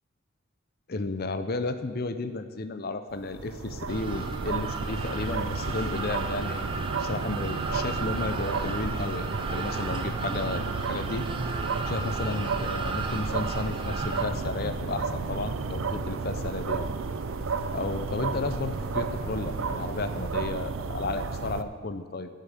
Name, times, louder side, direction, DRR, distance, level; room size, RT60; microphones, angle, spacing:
voice 1, 0.9-6.7 7.0-11.2 11.9-16.9 17.7-22.3, left 3 dB, 50° left, 9 dB, 0.6 m, -33 dB
sound 1, 3.1-21.6, right 4 dB, 75° right, 0.6 m, -32 dB
sound 2, 3.9-14.2, right 3 dB, 25° right, 1.0 m, -36 dB
sound 3, 4.7-20.3, right 1 dB, 10° left, 4.0 m, -44 dB
10.5 x 7.5 x 9.1 m, 1.5 s
head